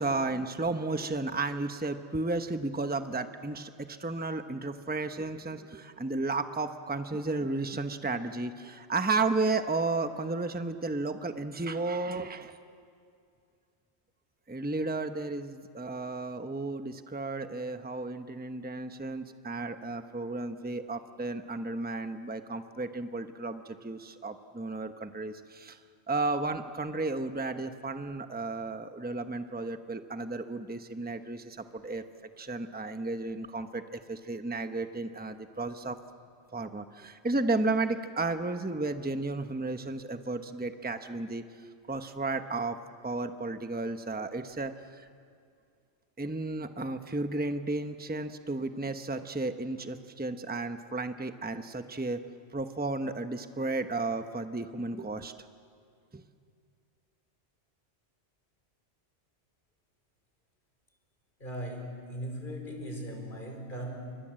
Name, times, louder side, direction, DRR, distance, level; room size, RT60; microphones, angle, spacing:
voice 1, 0.0-12.6 14.5-25.8 26.1-32.0 32.4-36.0 36.5-41.4 41.9-42.8 43.0-45.1 46.2-52.2 52.5-55.3 56.1-56.2, right 3 dB, 10° right, 8 dB, 0.9 m, -33 dB
voice 2, 61.4-64.2, equal, 45° left, 3 dB, 4.6 m, -39 dB
30.0 x 25.5 x 7.6 m, 2.3 s
omnidirectional pair, 1.1 m